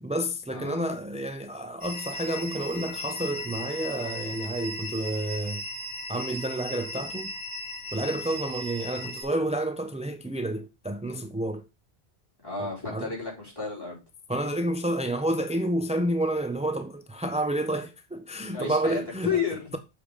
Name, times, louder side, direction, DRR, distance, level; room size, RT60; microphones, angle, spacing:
voice 1, 0.0-5.6 6.1-7.3 7.9-11.7 12.6-13.1 14.3-19.4, right 1 dB, 10° right, 0.4 m, -30 dB
sound 1, 1.8-9.2, left 1 dB, 50° left, 2.6 m, -37 dB
voice 2, 12.4-14.0 18.4-19.8, left 6 dB, 20° left, 4.8 m, -32 dB
7.1 x 4.9 x 5.1 m
omnidirectional pair, 1.1 m